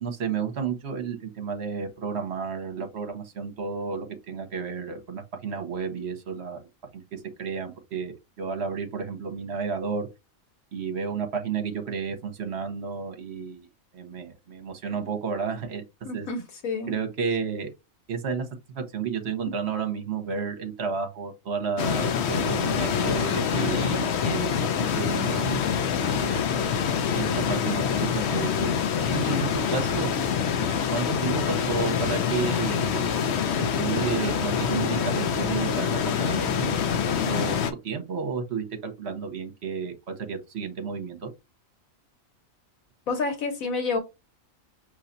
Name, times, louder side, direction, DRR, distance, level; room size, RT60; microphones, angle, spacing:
voice 1, 0.0-6.6 6.9-10.1 10.7-13.7 13.9-15.8 16.1-16.3 16.9-17.7 18.1-25.6 26.2-26.5 27.1-30.1 30.9-33.1 33.8-37.5 37.8-41.3, right 6 dB, 55° right, 1.2 m, -32 dB
voice 2, 16.0-16.9 43.1-44.0, left 3 dB, 85° left, 1.5 m, -29 dB
sound 1, 21.8-37.7, left 7 dB, 60° left, 0.8 m, -26 dB
5.5 x 3.1 x 2.6 m
omnidirectional pair, 1.4 m